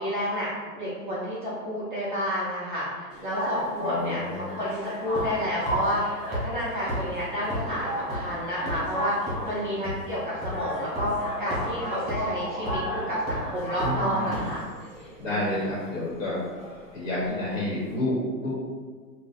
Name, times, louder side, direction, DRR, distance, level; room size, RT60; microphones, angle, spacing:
voice 1, 0.0-14.6 15.3-15.6, equal, 35° right, -9 dB, 0.4 m, -30 dB
sound 1, 3.1-17.9, equal, 25° left, 0.8 m, -35 dB
voice 2, 3.8-4.6 13.8-14.5 15.2-16.4 16.9-18.6, left 1 dB, 55° left, -6 dB, 0.9 m, -29 dB
sound 2, 5.1-5.4 5.7-5.8 6.3-6.4 6.9-7.0 7.5-7.6 8.1-8.2 8.7-8.9 9.3-9.4 9.8-9.9 10.4-10.5 10.9-11.0 11.5-11.6 12.1-12.2 12.7-12.9 13.3-13.4 13.8-13.9 14.3-14.4, equal, 5° right, 0.9 m, -31 dB
2.6 x 2.0 x 3.9 m, 1.5 s
hypercardioid pair, 170°, 48 cm